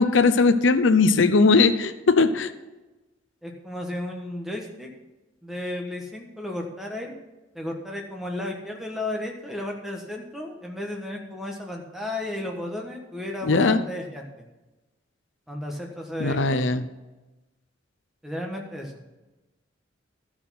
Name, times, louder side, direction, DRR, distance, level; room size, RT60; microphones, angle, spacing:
voice 1, 0.0-2.5 13.4-13.8 16.2-16.9, left 4 dB, 70° left, 11 dB, 0.7 m, -19 dB
voice 2, 3.4-4.9 5.4-7.1 7.5-14.3 15.5-16.7 18.2-18.9, left 1 dB, ahead, 1 dB, 1.3 m, -33 dB
13.0 x 6.1 x 5.9 m, 1.1 s
head